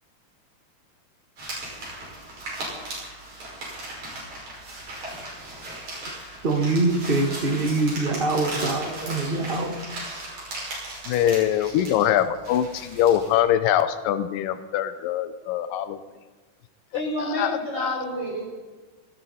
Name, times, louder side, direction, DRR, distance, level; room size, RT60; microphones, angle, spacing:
sound 1, 1.4-13.4, right 1 dB, 60° right, 7.1 m, -37 dB
voice 1, 6.4-9.7, right 2 dB, 85° right, 2 dB, 0.5 m, -24 dB
voice 2, 11.1-16.0 16.9-17.0 17.4-18.0, left 11 dB, 85° left, 11 dB, 2.3 m, -23 dB
voice 3, 16.9-18.5, equal, 35° right, -2 dB, 4.7 m, -29 dB
19.5 x 16.0 x 4.2 m, 1.3 s
omnidirectional pair, 3.8 m